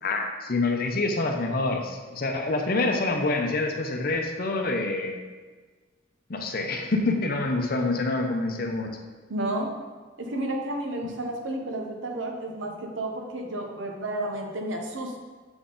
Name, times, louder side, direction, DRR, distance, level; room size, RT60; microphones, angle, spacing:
voice 1, 0.0-5.2 6.3-8.9, left 2 dB, 50° left, 3 dB, 0.6 m, -26 dB
voice 2, 9.3-9.7 10.2-15.1, right 1 dB, 80° right, 2 dB, 0.9 m, -31 dB
6.9 x 3.9 x 3.8 m, 1.4 s
head